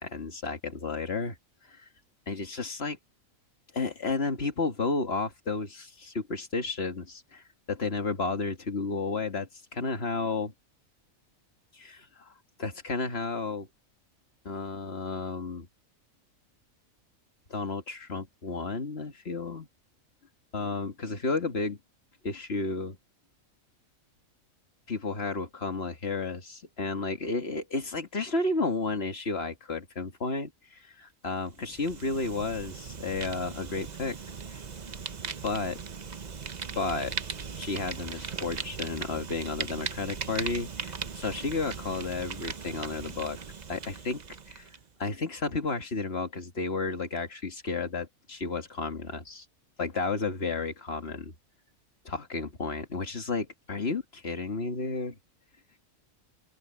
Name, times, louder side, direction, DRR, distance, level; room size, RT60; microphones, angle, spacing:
voice 1, 0.0-1.4 1.7-1.8 2.3-3.0 3.7-10.5 11.7-12.3 12.6-13.7 14.5-15.7 17.5-19.7 20.5-21.8 22.2-23.0 24.9-34.2 34.5-34.6 35.4-35.8 36.8-37.1 37.6-43.4 43.7-44.2 44.5-44.7 45.0-49.5 49.8-51.4 52.1-55.2, left 3 dB, 50° left, 2.2 m, -32 dB
Fire, 31.5-44.8, right 5 dB, 35° right, 0.8 m, -39 dB
open air
omnidirectional pair, 1.4 m